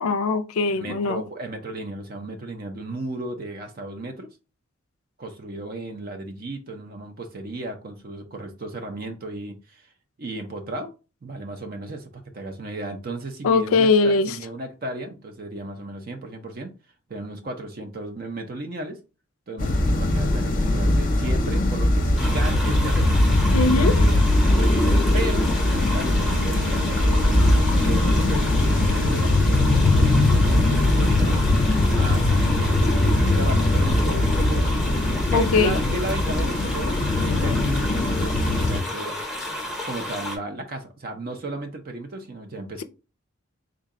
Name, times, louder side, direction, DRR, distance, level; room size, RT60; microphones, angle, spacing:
voice 1, 0.0-1.2 13.4-14.4 23.5-23.9 35.3-35.8, left 4 dB, 85° left, 0.4 m, -21 dB
voice 2, 0.8-4.3 5.2-9.9 10.2-10.9 11.2-16.7 17.1-19.0 19.5-23.2 23.7-25.5 25.9-28.6 28.9-31.5 31.9-39.2 39.9-42.8, right 2 dB, 45° right, 0.5 m, -34 dB
sound 1, 19.6-38.8, left 1 dB, 40° left, 0.6 m, -20 dB
sound 2, 22.2-40.4, left 1 dB, ahead, 0.7 m, -33 dB
Bowed string instrument, 25.4-32.1, left 4 dB, 65° right, 1.0 m, -37 dB
3.7 x 2.2 x 3.6 m
head